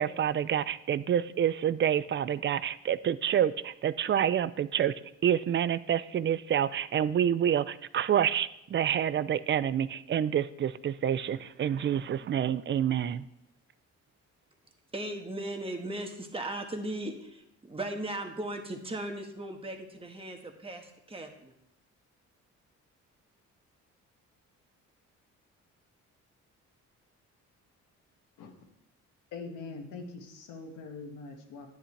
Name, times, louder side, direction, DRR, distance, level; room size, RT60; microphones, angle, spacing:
voice 1, 0.0-4.9 5.2-13.3, right 9 dB, 40° right, 16 dB, 0.5 m, -28 dB
voice 2, 14.9-21.5, right 1 dB, 20° right, 3 dB, 1.6 m, -37 dB
voice 3, 29.3-31.7, left 4 dB, 85° left, 3 dB, 1.7 m, -43 dB
10.5 x 10.0 x 3.3 m, 0.81 s
cardioid pair, 90°, 30 cm